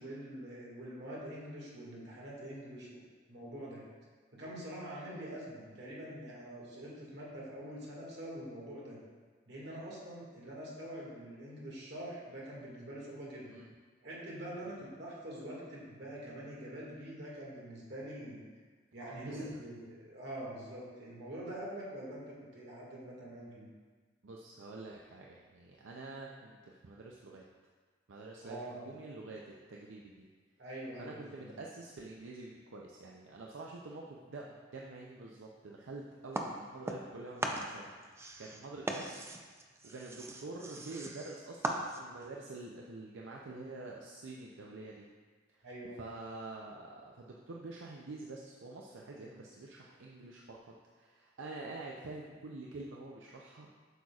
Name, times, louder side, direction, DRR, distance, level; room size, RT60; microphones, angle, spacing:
voice 1, 0.0-3.8 4.3-9.0 9.5-13.5 14.0-18.4 18.9-23.7 28.4-28.8 30.6-31.5 45.6-46.0, right 1 dB, 60° right, -5 dB, 1.9 m, -45 dB
voice 2, 19.0-19.5 24.2-27.4 28.1-30.3 31.0-39.3 39.8-45.1 45.6-45.7 46.0-53.8, right 2 dB, 85° right, -2 dB, 0.5 m, -47 dB
sound 1, 36.3-37.1 37.4-42.3, right 1 dB, 15° right, 0.4 m, -39 dB
8.0 x 6.3 x 2.4 m, 1.5 s
head